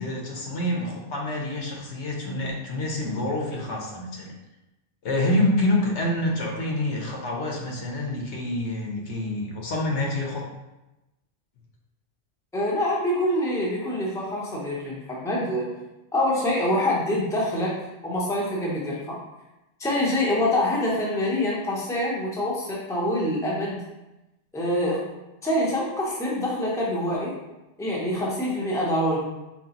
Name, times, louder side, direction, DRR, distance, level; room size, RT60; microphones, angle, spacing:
voice 1, 0.0-4.3 5.0-10.4, left 1 dB, 75° left, -1 dB, 1.1 m, -27 dB
voice 2, 12.5-15.7 16.1-17.7 18.0-19.2 19.8-23.8 24.5-25.0 25.4-27.3 27.8-29.2, left 1 dB, 5° left, -4 dB, 0.7 m, -25 dB
4.4 x 3.1 x 2.9 m, 0.98 s
omnidirectional pair, 1.2 m